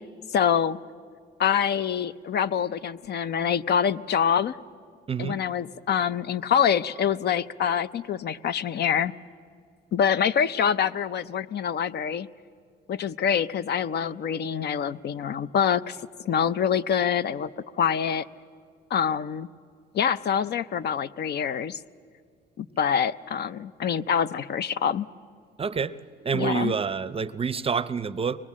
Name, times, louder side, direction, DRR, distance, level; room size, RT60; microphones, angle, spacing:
voice 1, 0.3-0.8 1.4-4.6 5.2-9.1 9.9-12.3 12.9-16.0 16.2-17.5 17.8-18.2 18.9-19.5 19.9-21.8 22.6-25.1 26.3-26.7, left 8 dB, 50° left, 16 dB, 0.5 m, -25 dB
voice 2, 5.1-5.4 25.6-26.0 26.2-28.4, right 5 dB, 25° right, 15 dB, 0.6 m, -27 dB
23.5 x 20.5 x 7.4 m, 2.2 s
cardioid pair, 95°, 21 cm